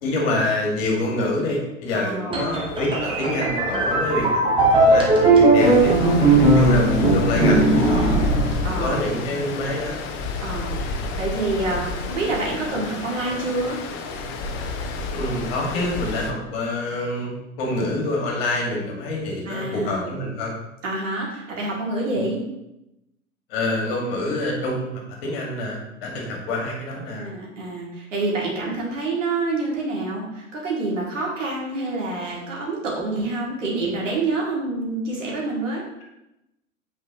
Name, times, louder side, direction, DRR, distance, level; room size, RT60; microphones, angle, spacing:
voice 1, 0.0-8.1 8.8-10.0 15.1-20.5 23.5-24.9 25.2-27.3, left 2 dB, 45° left, -1 dB, 2.1 m, -26 dB
voice 2, 1.9-2.6 7.4-8.3 8.6-9.0 10.4-13.8 19.4-20.2 20.8-22.4 27.1-35.8, right 2 dB, 65° right, -3 dB, 2.3 m, -27 dB
sound 1, 2.3-9.0, right 2 dB, 10° right, 1.3 m, -18 dB
Stream, 5.6-16.3, left 2 dB, 30° left, 0.7 m, -29 dB
9.1 x 4.8 x 3.0 m, 0.89 s
figure-of-eight pair, 95°, 40 cm